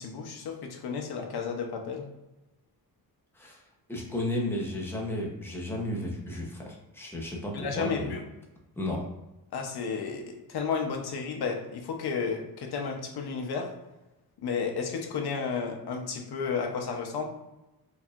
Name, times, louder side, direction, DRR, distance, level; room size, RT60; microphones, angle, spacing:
voice 1, 0.0-2.1 7.5-8.2 9.5-10.2 10.5-13.7 14.4-17.2, left 5 dB, 85° left, 2 dB, 0.8 m, -32 dB
voice 2, 3.9-8.2 8.8-9.0, left 1 dB, 5° left, -1 dB, 0.8 m, -33 dB
4.4 x 3.1 x 2.4 m, 0.99 s
cardioid pair, 110°, 37 cm